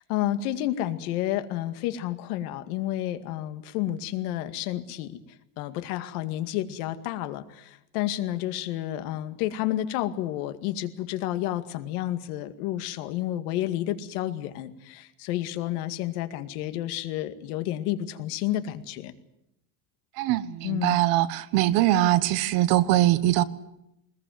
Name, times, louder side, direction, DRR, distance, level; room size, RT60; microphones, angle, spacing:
voice 1, 0.0-5.2 5.6-19.1 20.6-21.0, left 13 dB, 75° left, 2.2 m, -30 dB
voice 2, 20.2-23.4, right 15 dB, 50° right, 1.2 m, -22 dB
22.5 x 20.5 x 9.3 m
cardioid pair, 175°, 46 cm